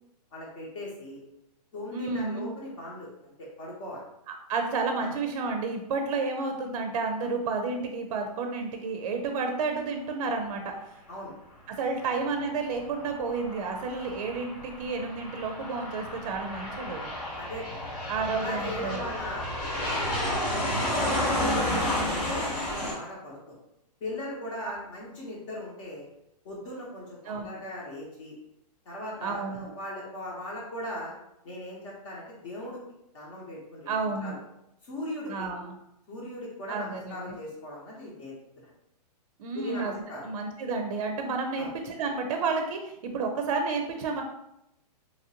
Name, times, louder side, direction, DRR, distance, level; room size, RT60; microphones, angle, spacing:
voice 1, 0.3-1.2 1.7-4.0 5.0-5.1 11.1-11.3 17.3-18.0 18.4-19.5 19.8-21.5 21.9-23.6 24.0-26.0 26.4-28.3 28.8-31.1 31.4-32.8 33.1-34.4 34.8-35.5 36.1-38.7 39.5-40.3 41.6-41.7, left 1 dB, 50° left, -5 dB, 0.9 m, -39 dB
voice 2, 1.9-2.5 4.5-10.7 11.7-17.0 18.1-19.0 24.6-24.7 27.2-27.5 29.2-29.7 33.9-34.4 35.3-35.8 36.7-37.4 39.4-44.2, right 4 dB, 55° right, 4 dB, 0.4 m, -31 dB
Aircraft, 12.7-22.9, left 1 dB, 65° left, 1.3 m, -31 dB
2.9 x 2.5 x 2.8 m, 0.83 s
hypercardioid pair, 160°, 21 cm